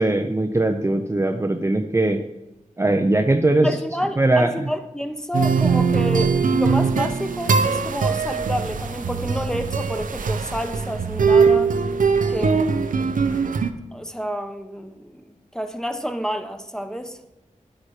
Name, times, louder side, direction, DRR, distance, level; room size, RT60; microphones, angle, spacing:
voice 1, 0.0-2.2 2.8-3.7 4.2-4.5, right 2 dB, 20° right, 5 dB, 0.6 m, -20 dB
voice 2, 3.6-11.7 12.3-12.9 13.9-17.2, equal, 5° left, 7 dB, 1.0 m, -29 dB
sound 1, 5.3-13.7, right 5 dB, 85° right, 0.7 m, -21 dB
10.5 x 8.6 x 4.9 m, 0.95 s
wide cardioid pair, 80°, 14 cm